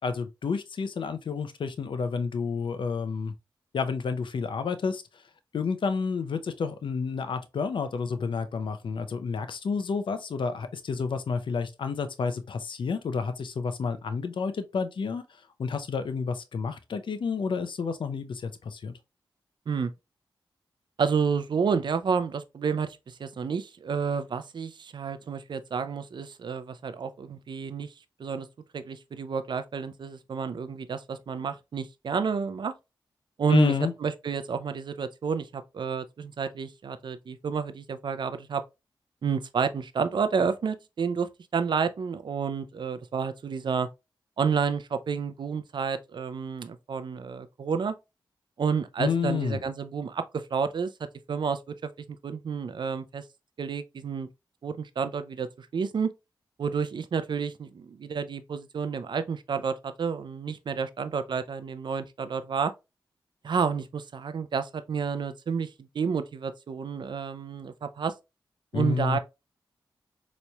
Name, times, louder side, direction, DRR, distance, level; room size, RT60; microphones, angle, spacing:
voice 1, 0.0-3.3 3.7-5.0 5.5-15.2 15.6-18.9 33.5-33.9 49.0-49.6 68.7-69.2, left 5 dB, 70° left, 0.6 m, -30 dB
voice 2, 21.0-27.9 28.2-28.5 28.7-32.7 33.4-33.7 34.0-38.6 39.2-43.9 44.4-47.9 48.6-50.9 51.3-53.2 53.6-54.3 54.6-56.1 56.6-62.7 63.4-68.1 68.7-69.2, right 6 dB, 60° right, 0.4 m, -30 dB
4.1 x 3.0 x 2.2 m
cardioid pair, 65°, 9 cm